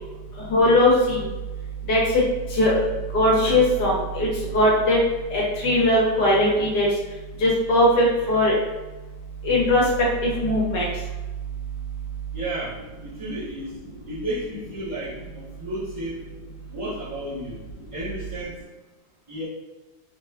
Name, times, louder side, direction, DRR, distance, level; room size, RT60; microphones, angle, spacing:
voice 1, 0.5-1.2 1.9-2.2 2.5-2.8 3.1-5.0 5.3-6.9 7.4-8.5 9.4-9.8 10.2-10.9, left 1 dB, 70° left, -4 dB, 1.2 m, -19 dB
voice 2, 12.3-13.7 14.1-16.2 16.7-17.6 17.9-18.6 19.3-19.5, right 1 dB, 25° right, -17 dB, 0.8 m, -32 dB
3.2 x 2.2 x 2.3 m, 1.1 s
omnidirectional pair, 2.0 m